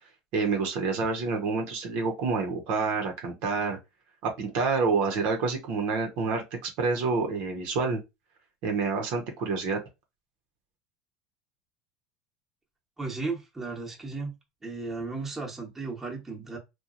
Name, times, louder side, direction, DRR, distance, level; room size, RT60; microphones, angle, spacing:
voice 1, 0.3-3.8 4.2-8.0 8.6-9.8, right 4 dB, 65° right, 0.8 m, -28 dB
voice 2, 13.0-14.4 14.6-16.6, right 3 dB, 15° right, 1.0 m, -35 dB
2.9 x 2.3 x 2.5 m
supercardioid pair, 110°, 2 cm